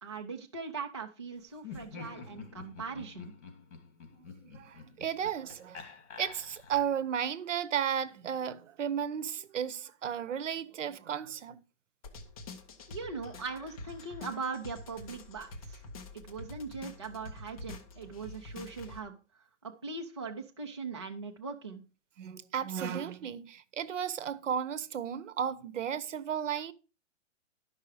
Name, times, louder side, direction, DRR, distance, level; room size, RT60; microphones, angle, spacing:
voice 1, 0.0-3.3 12.9-15.8 16.1-21.8, right 4 dB, 25° right, 0.4 m, -40 dB
Laughter, 1.6-7.0, left 5 dB, 65° left, 2.7 m, -48 dB
voice 2, 4.2-11.6 22.2-26.7, right 8 dB, 70° right, 0.9 m, -34 dB
sound 1, 12.0-19.0, left 2 dB, 30° left, 1.0 m, -47 dB
11.5 x 5.6 x 4.8 m
hypercardioid pair, 180°, 38 cm